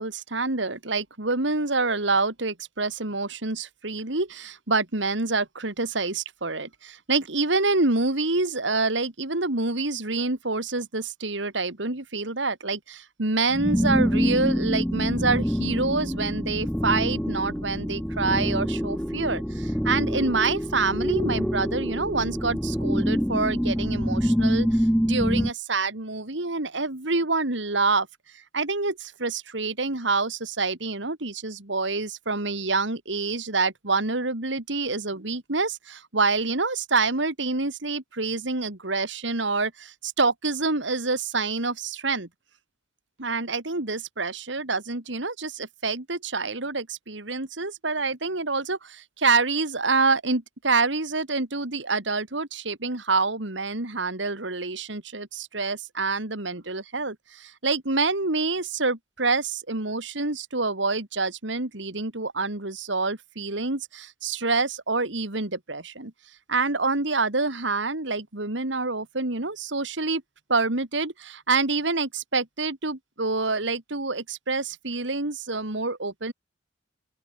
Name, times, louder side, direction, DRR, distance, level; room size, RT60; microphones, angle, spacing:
voice 1, 0.0-28.1 28.3-42.3 43.2-66.1 66.5-70.2 70.5-76.3, right 3 dB, 70° right, 2.6 m, -27 dB
sound 1, 13.5-25.5, equal, 5° left, 3.1 m, -26 dB
open air
head